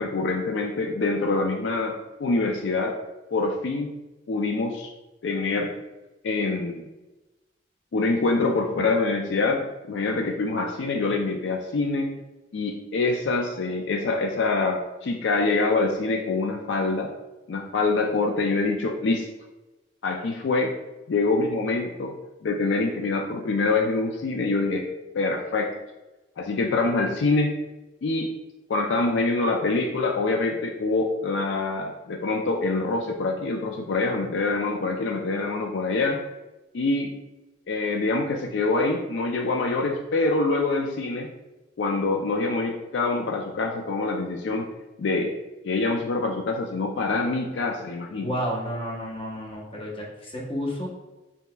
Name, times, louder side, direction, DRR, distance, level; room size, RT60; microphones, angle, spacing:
voice 1, 0.0-3.0 3.3-3.9 4.3-4.9 5.2-5.7 6.2-6.9 7.9-12.1 12.5-17.1 17.5-19.3 20.0-20.7 21.1-22.2 22.4-24.9 25.1-25.7 26.4-27.5 28.0-28.3 28.7-36.2 36.7-37.1 37.7-41.3 41.8-44.7 45.0-45.3 45.6-48.3, left 3 dB, 80° left, 3 dB, 0.4 m, -25 dB
voice 2, 48.2-50.9, equal, 30° left, -2 dB, 0.9 m, -31 dB
5.4 x 2.9 x 2.3 m, 1.0 s
head